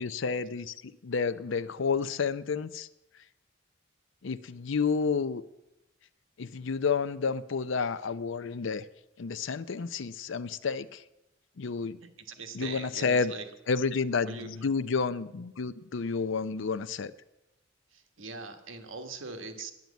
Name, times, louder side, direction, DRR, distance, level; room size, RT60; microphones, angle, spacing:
voice 1, 0.0-2.9 4.2-5.4 6.4-8.8 9.2-11.0 11.6-12.0 12.5-13.3 13.7-17.1, left 5 dB, 70° left, 15 dB, 0.5 m, -30 dB
voice 2, 12.0-13.4 14.3-14.5 18.2-19.7, right 4 dB, 70° right, 6 dB, 1.4 m, -41 dB
10.5 x 9.1 x 8.2 m, 0.91 s
head